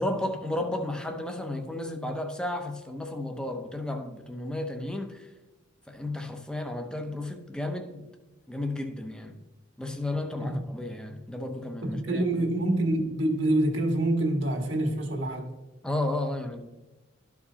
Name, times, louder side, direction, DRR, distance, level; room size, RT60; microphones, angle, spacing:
voice 1, 0.0-5.3 5.9-8.0 8.5-9.4 9.8-12.4 15.8-16.6, left 1 dB, 5° left, 0.7 m, -33 dB
voice 2, 11.8-15.6, right 1 dB, 75° right, 1.6 m, -26 dB
12.5 x 4.8 x 2.8 m
head